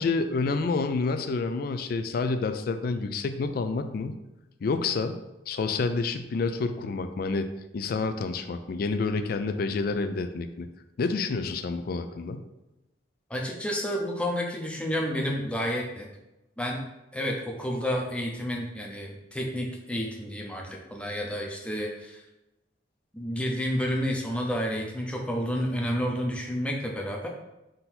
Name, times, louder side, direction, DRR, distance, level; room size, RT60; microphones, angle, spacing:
voice 1, 0.0-4.2 4.6-5.2 5.5-7.5 7.7-10.7 11.0-12.4, left 4 dB, 55° left, 9 dB, 0.3 m, -28 dB
voice 2, 13.3-16.1 16.6-16.8 17.1-22.2 23.1-27.3, equal, 5° left, 0 dB, 0.6 m, -30 dB
3.8 x 2.7 x 4.2 m, 0.96 s
head